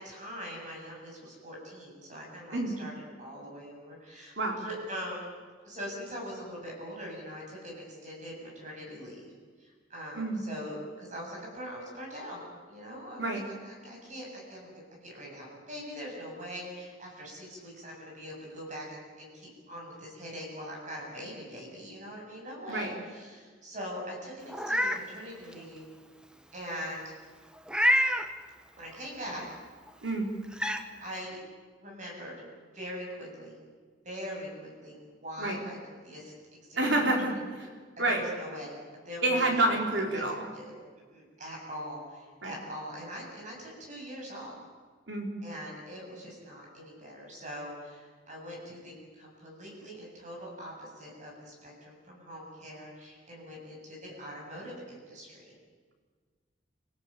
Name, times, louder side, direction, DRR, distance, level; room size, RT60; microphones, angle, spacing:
voice 1, 0.0-4.3 4.6-5.3 5.6-9.3 9.6-13.2 13.6-25.8 26.5-27.1 28.7-29.5 31.0-31.4 31.8-33.6 34.0-35.8 36.0-36.3 36.7-36.8 37.5-37.6 38.1-38.8 39.0-40.2 40.5-40.7 41.1-44.6 45.4-55.5, equal, 40° right, -1 dB, 7.9 m, -42 dB
Meow, 24.5-25.0 25.5-25.6 27.7-28.3 29.9-30.0 30.5-30.8, equal, 5° right, 1.2 m, -26 dB
voice 2, 36.8-37.7 38.0-38.2 39.2-40.5 42.4-42.5 45.1-45.3, right 2 dB, 70° right, 2 dB, 4.3 m, -28 dB
27.0 x 16.5 x 8.6 m, 1.5 s
head